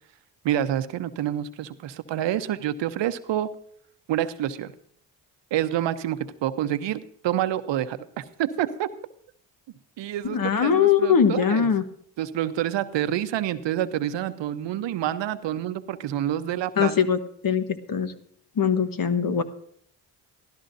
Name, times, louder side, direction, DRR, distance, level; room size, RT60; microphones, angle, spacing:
voice 1, 0.4-3.5 4.1-4.7 5.5-8.9 10.0-11.7 12.2-16.9, right 11 dB, 75° right, 12 dB, 0.8 m, -28 dB
voice 2, 10.2-11.8 16.8-17.2 17.4-18.1 18.6-19.4, left 7 dB, 50° left, 9 dB, 1.3 m, -21 dB
16.5 x 13.0 x 2.7 m, 0.62 s
supercardioid pair, 60°, 43 cm